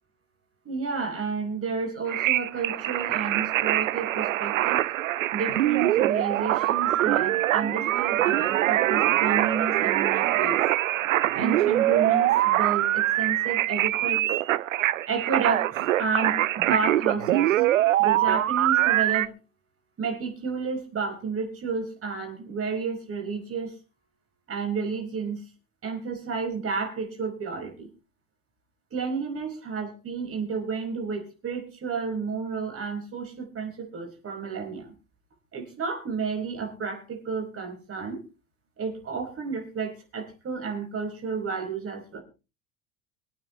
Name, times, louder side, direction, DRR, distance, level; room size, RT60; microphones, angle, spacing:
voice 1, 0.7-4.8 5.3-10.6 11.3-14.2 15.1-17.6 18.0-19.3 20.0-23.7 24.5-25.4 25.8-27.9 28.9-34.9 35.5-38.2 38.8-42.2, right 5 dB, 35° right, 3 dB, 5.3 m, -31 dB
sound 1, 2.1-19.3, right 14 dB, 70° right, 0.6 m, -23 dB
24.5 x 8.8 x 3.2 m, 0.31 s
figure-of-eight pair, 65°, 41 cm